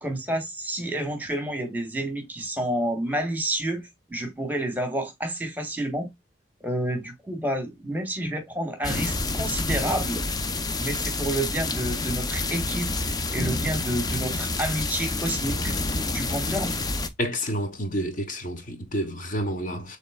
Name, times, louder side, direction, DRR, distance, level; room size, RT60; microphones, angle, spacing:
voice 1, 0.0-6.1 6.6-10.2 10.8-15.7 16.1-16.7, right 1 dB, 10° right, 1.3 m, -29 dB
sound 1, 8.8-17.1, left 2 dB, 20° left, 0.5 m, -28 dB
voice 2, 17.2-20.0, equal, 45° left, 1.0 m, -29 dB
7.2 x 3.2 x 2.2 m
head